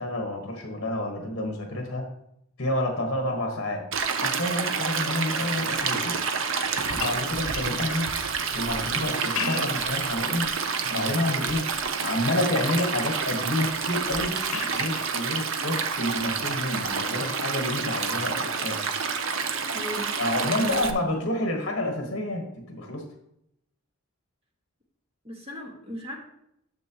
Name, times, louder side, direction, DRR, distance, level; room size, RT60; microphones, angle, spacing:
voice 1, 0.0-2.0 2.6-3.8 4.2-6.4 6.9-8.1 8.5-10.5 10.9-11.7 12.0-14.4 14.7-18.8 20.2-23.0, left 1 dB, 55° left, 2 dB, 1.4 m, -29 dB
Stream, 3.9-20.9, right 5 dB, 65° right, 0.7 m, -28 dB
sound 1, 6.5-8.2 9.1-9.9 10.4-11.0 11.5-12.0 12.3-13.0 14.5-15.1 16.8-16.9, left 6 dB, 70° left, 0.9 m, -37 dB
voice 2, 19.7-20.1 20.5-20.9 25.2-26.2, equal, 30° right, 0 dB, 1.7 m, -37 dB
10.5 x 6.8 x 2.9 m, 0.75 s
head